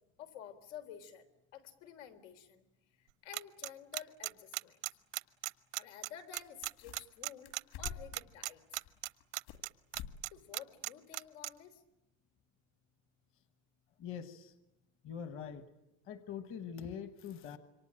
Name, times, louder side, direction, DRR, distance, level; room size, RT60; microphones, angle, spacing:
voice 1, 0.2-1.3 1.5-2.6 3.0-4.8 5.8-7.5 7.8-8.8 10.3-11.8, left 9 dB, 90° left, 7 dB, 3.7 m, -51 dB
sound 1, 3.3-10.3 10.5-11.5, right 24 dB, 85° right, 0.9 m, -37 dB
sound 2, 4.3-4.4 6.0-6.1 6.3-7.2 7.4-8.3 8.7-9.6 9.9-10.2 10.5-10.6 11.1-11.2, left 9 dB, 50° left, 2.5 m, -47 dB
voice 2, 14.0-14.5 15.0-15.7 16.0-17.6, left 7 dB, 30° left, 10 dB, 1.2 m, -43 dB
27.0 x 24.0 x 8.9 m, 0.90 s
cardioid pair, 175°, 39 cm